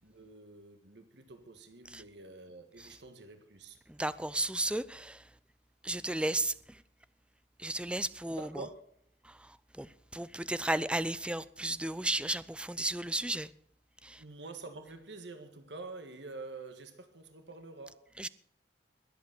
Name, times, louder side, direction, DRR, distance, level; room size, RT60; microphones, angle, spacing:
voice 1, 0.0-3.8 8.4-8.8 14.2-18.2, right 3 dB, 70° right, 1.7 m, -47 dB
voice 2, 3.9-5.3 5.8-6.8 7.6-8.7 9.2-13.5 14.0-14.2 18.2-18.3, right 1 dB, 5° right, 0.5 m, -34 dB
21.5 x 8.4 x 6.1 m
head